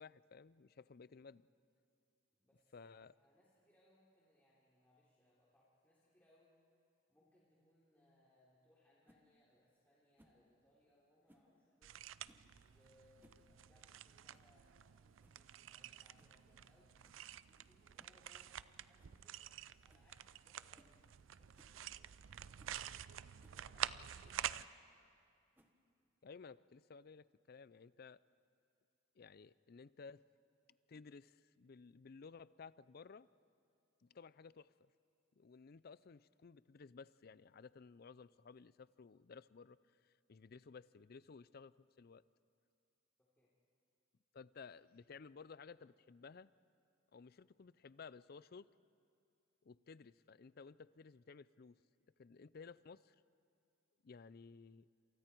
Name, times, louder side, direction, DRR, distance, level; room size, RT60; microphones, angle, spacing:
voice 1, 0.0-1.5 2.7-3.1 26.2-28.2 29.2-30.2 30.9-33.3 34.0-34.9 35.4-39.8 40.0-42.2 44.3-46.5 47.1-48.7 49.6-51.8 52.2-53.2 54.0-54.9, left 5 dB, 50° left, 18 dB, 0.5 m, -56 dB
voice 2, 2.3-2.9 3.2-6.6 7.1-12.1 12.6-16.9 17.4-22.0 23.5-25.0 43.2-43.5, left 1 dB, 10° left, -8 dB, 3.6 m, -73 dB
sound 1, 9.0-9.2 10.2-10.4 11.3-11.5 12.2-12.5 13.0-13.5 13.7-13.8 14.3-14.5 14.9-15.0 15.2-15.5 16.2-16.4 17.0-17.2 18.0-18.2 18.6-18.7 19.0-19.2 19.5-19.6 19.9-20.1 20.7-21.0 21.5-21.8 22.3-22.4 22.6-22.8 23.4-23.6 24.6-24.8 25.5-25.9, equal, 10° right, 1.5 m, -70 dB
sound 2, 11.8-24.6, right 10 dB, 85° right, 0.5 m, -49 dB
28.5 x 27.5 x 4.6 m, 2.5 s
head